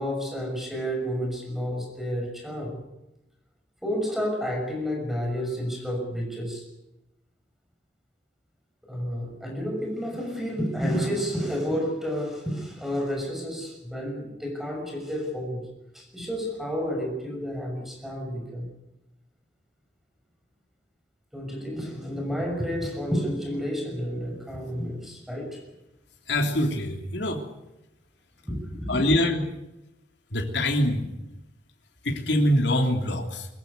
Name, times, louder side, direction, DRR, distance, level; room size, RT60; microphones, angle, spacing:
voice 1, 0.0-2.8 3.8-6.6 8.9-15.7 15.9-18.7 21.3-25.6 28.4-29.0, equal, ahead, 2 dB, 6.2 m, -30 dB
voice 2, 26.3-27.4 28.9-29.5 30.3-31.1 32.0-33.5, left 1 dB, 85° left, 2 dB, 3.1 m, -24 dB
23.0 x 15.0 x 9.5 m, 0.93 s
head